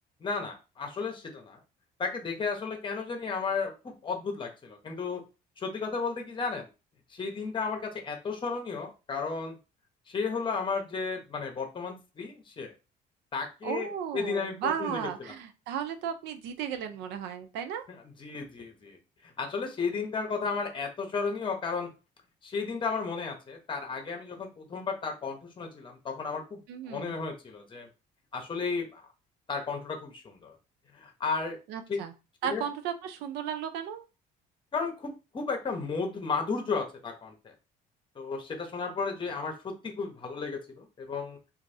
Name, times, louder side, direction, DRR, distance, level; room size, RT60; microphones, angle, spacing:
voice 1, 0.2-1.6 2.0-5.2 5.6-6.7 7.1-9.6 10.1-12.7 13.3-13.9 14.1-15.3 18.2-19.0 19.2-21.9 22.4-26.6 26.9-27.9 28.3-29.0 29.5-30.5 30.9-31.6 31.9-32.0 32.4-32.6 34.7-37.5 38.2-41.4, left 4 dB, 30° left, 3 dB, 0.9 m, -33 dB
voice 2, 13.6-17.9 26.7-27.2 31.7-32.1 32.4-34.0, right 8 dB, 85° right, 8 dB, 0.5 m, -35 dB
3.0 x 2.5 x 2.6 m, 0.29 s
cardioid pair, 110°, 17 cm